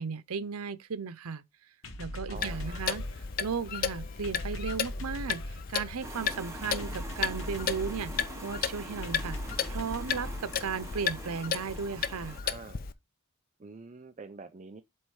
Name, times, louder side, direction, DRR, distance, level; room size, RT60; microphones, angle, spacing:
voice 1, 0.0-1.4 2.0-3.0 3.4-5.4 5.7-8.1 8.4-9.4 9.7-12.4, right 5 dB, 85° right, 0.6 m, -35 dB
sound 1, 1.8-11.4, left 1 dB, 65° left, 1.0 m, -42 dB
Clock, 2.3-12.9, left 7 dB, 40° left, 0.5 m, -35 dB
voice 2, 2.3-3.0 12.4-12.8 13.6-14.8, right 4 dB, 35° right, 0.4 m, -46 dB
sound 2, 6.0-12.4, right 2 dB, 15° right, 1.0 m, -44 dB
7.8 x 3.1 x 4.6 m
head